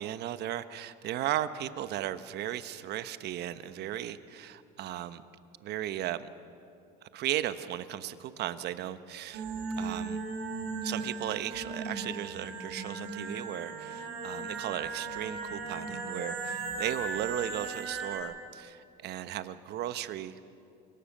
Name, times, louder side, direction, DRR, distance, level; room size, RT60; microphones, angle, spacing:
voice 1, 0.0-5.2 5.6-6.3 7.0-9.4 9.8-10.2 10.8-20.4, right 12 dB, 55° right, 12 dB, 1.1 m, -36 dB
sound 1, 9.3-18.2, right 3 dB, 70° right, 5.5 m, -37 dB
29.5 x 18.0 x 6.7 m, 2.5 s
supercardioid pair, 95°, 20 cm